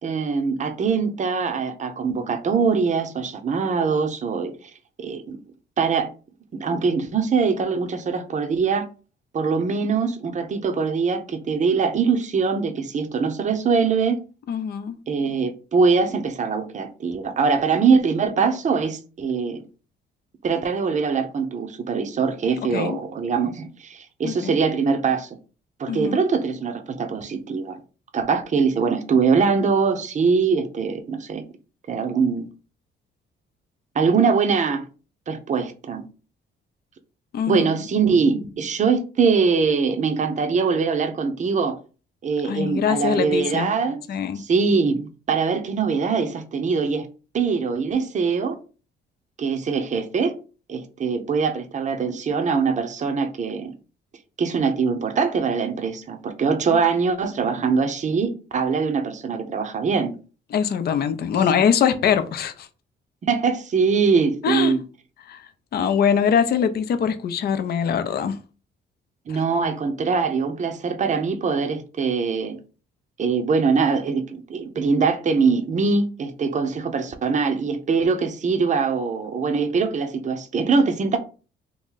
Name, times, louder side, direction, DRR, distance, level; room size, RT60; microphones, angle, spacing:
voice 1, 0.0-4.5 5.0-5.4 5.8-6.1 6.6-8.8 9.3-14.2 15.1-19.6 20.4-25.3 25.8-27.8 28.1-31.4 31.9-32.5 33.9-34.9 35.3-36.0 37.5-41.8 42.2-44.0 44.4-47.1 47.3-48.6 49.4-50.3 50.7-53.7 54.4-60.2 61.3-61.5 63.2-64.8 69.3-72.6 73.2-81.2, right 5 dB, 40° right, 0.6 m, -22 dB
voice 2, 14.5-14.9 22.7-23.0 24.2-24.6 25.9-26.2 37.3-37.7 42.4-43.8 44.1-44.4 56.7-56.8 60.5-62.7 64.4-64.8 65.3-68.4 69.3-69.4, left 7 dB, 55° left, 0.5 m, -23 dB
2.9 x 2.5 x 3.7 m
cardioid pair, 90°, 20 cm